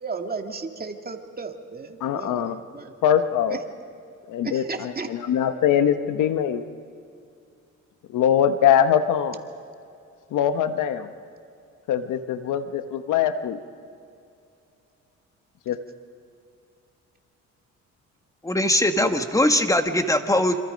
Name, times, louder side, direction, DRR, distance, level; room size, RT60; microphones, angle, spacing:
voice 1, 0.0-2.9 3.5-3.6 4.4-5.1, right 4 dB, 30° right, 4 dB, 2.2 m, -34 dB
voice 2, 2.0-2.6 3.0-3.6 4.3-6.6 8.1-9.4 10.3-11.1 11.9-13.6 15.7-15.8 19.0-19.1, left 9 dB, 80° left, 10 dB, 1.2 m, -22 dB
voice 3, 18.4-20.6, left 1 dB, 10° left, 7 dB, 1.7 m, -21 dB
27.0 x 27.0 x 5.3 m, 2.5 s
cardioid pair, 90°, 30 cm